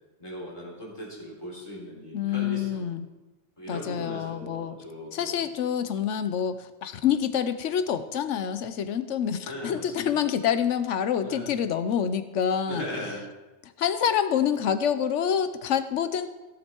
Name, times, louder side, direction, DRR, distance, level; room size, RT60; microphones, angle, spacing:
voice 1, 0.2-2.9 3.6-5.5 9.4-10.2 11.2-11.5 12.7-13.2, equal, 25° left, -5 dB, 3.8 m, -38 dB
voice 2, 2.1-3.1 3.7-4.7 5.1-12.8 13.6-16.3, left 8 dB, 80° left, 11 dB, 1.1 m, -27 dB
16.5 x 7.5 x 4.5 m, 1.1 s
omnidirectional pair, 1.2 m